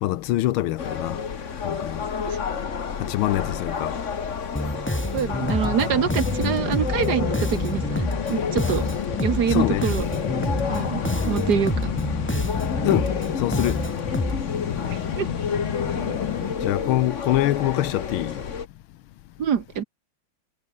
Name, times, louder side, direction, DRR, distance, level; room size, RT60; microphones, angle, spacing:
voice 1, 0.0-1.2 1.6-2.0 3.0-4.0 9.5-9.9 12.8-13.9 16.6-18.4, left 14 dB, 85° left, 1.6 m, -24 dB
sound 1, 0.8-18.7, left 6 dB, 40° left, 1.6 m, -30 dB
Bass guitar, 4.5-14.4, equal, 5° left, 4.1 m, -28 dB
voice 2, 5.1-8.8 9.2-10.0 10.7-11.9 14.9-15.3 19.4-19.8, right 8 dB, 55° right, 1.7 m, -25 dB
sound 2, 5.4-16.6, left 9 dB, 70° left, 2.1 m, -31 dB
omnidirectional pair, 2.2 m